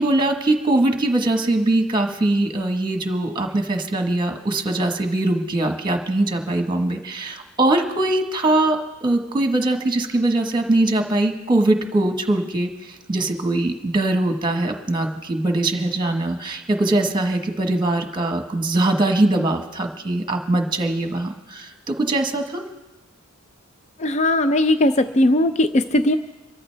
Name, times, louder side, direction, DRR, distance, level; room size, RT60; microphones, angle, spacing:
voice 1, 0.0-22.6, right 2 dB, 20° right, 5 dB, 1.3 m, -22 dB
voice 2, 24.0-26.2, left 1 dB, 30° left, 10 dB, 0.5 m, -18 dB
25.5 x 14.0 x 3.4 m, 1.0 s
head